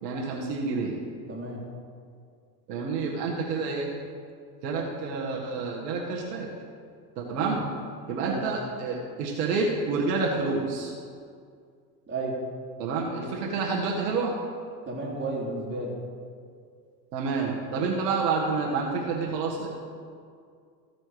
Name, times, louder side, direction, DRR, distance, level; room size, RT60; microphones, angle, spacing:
voice 1, 0.0-1.0 2.7-3.9 4.6-6.5 7.2-7.6 8.1-10.9 12.8-14.3 17.1-19.7, right 4 dB, 70° right, -2 dB, 1.8 m, -28 dB
voice 2, 1.3-1.6 7.3-7.6 8.2-8.4 12.1-12.3 14.9-15.9, right 2 dB, 20° right, -3 dB, 3.2 m, -32 dB
15.0 x 6.2 x 4.9 m, 2.2 s
hypercardioid pair, 100°, 50 cm